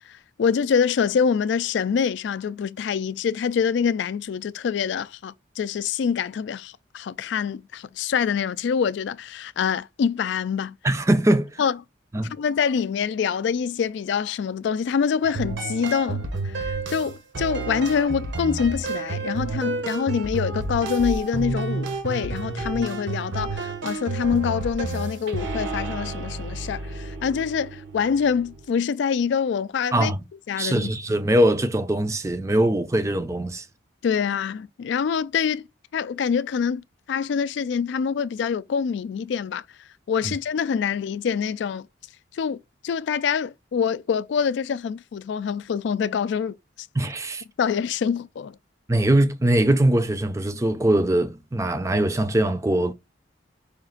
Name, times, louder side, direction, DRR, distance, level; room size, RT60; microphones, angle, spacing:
voice 1, 0.4-10.8 11.6-11.7 12.3-30.1 30.5-30.9 34.0-35.6 35.9-36.8 37.1-39.6 40.1-41.9 42.3-42.6 42.8-46.5 47.6-48.6, left 6 dB, 65° left, 0.3 m, -25 dB
voice 2, 10.8-11.6 12.1-12.3 29.9-30.2 30.6-33.7 40.2-40.3 46.9-47.4 48.9-52.9, right 1 dB, 15° right, 0.4 m, -22 dB
sound 1, 15.2-28.6, right 3 dB, 70° right, 1.0 m, -30 dB
5.1 x 2.4 x 3.8 m
head